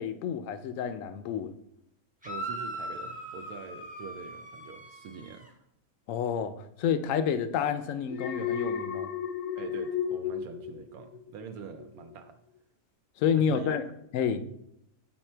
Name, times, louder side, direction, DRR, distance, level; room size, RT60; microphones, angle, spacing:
voice 1, 0.0-1.5 6.1-9.1 13.2-13.9 14.1-14.4, left 7 dB, 70° left, 0.9 m, -29 dB
sound 1, 2.2-5.5, right 1 dB, 5° right, 0.8 m, -40 dB
voice 2, 2.2-5.6 9.5-12.4 13.3-13.7 14.4-14.5, right 6 dB, 75° right, 1.1 m, -44 dB
Alarm, 8.1-11.4 11.8-12.1, left 8 dB, 85° left, 1.2 m, -33 dB
7.9 x 4.4 x 4.4 m
omnidirectional pair, 1.6 m